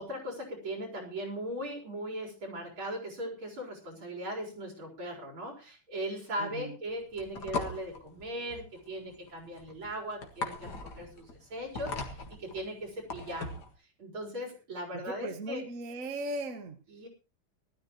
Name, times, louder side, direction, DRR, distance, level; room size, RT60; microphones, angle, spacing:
voice 1, 0.0-13.6 14.0-15.6 16.9-17.1, equal, 75° right, 0 dB, 5.2 m, -39 dB
voice 2, 6.4-6.8 14.9-16.8, right 2 dB, 45° right, 7 dB, 1.5 m, -37 dB
sound 1, 6.9-13.7, left 3 dB, 55° left, 2.4 m, -39 dB
19.0 x 13.0 x 3.1 m, 0.30 s
omnidirectional pair, 2.3 m